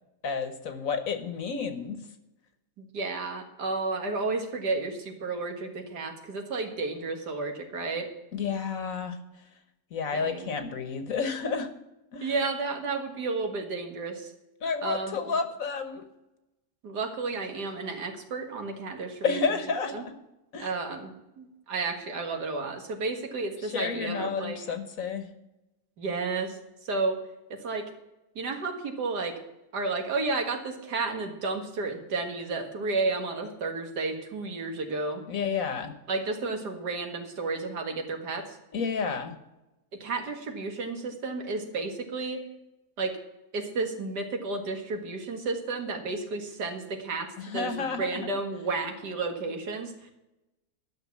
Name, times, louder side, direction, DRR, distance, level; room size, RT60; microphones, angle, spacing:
voice 1, 0.2-2.0 8.3-9.2 9.9-11.7 12.1-12.3 14.6-16.1 19.2-20.1 20.5-20.7 23.6-25.3 35.3-35.9 38.7-39.3 47.4-48.3, left 5 dB, 60° left, 9 dB, 1.5 m, -30 dB
voice 2, 2.8-8.1 10.1-10.5 12.2-14.3 14.8-15.3 16.8-19.4 19.9-20.0 20.6-24.6 26.0-27.2 27.5-27.8 28.4-29.3 29.7-35.2 36.1-38.6 40.0-42.4 43.0-43.1 43.5-50.1, right 3 dB, 90° right, 4 dB, 2.3 m, -32 dB
12.0 x 6.6 x 8.4 m, 0.94 s
omnidirectional pair, 1.7 m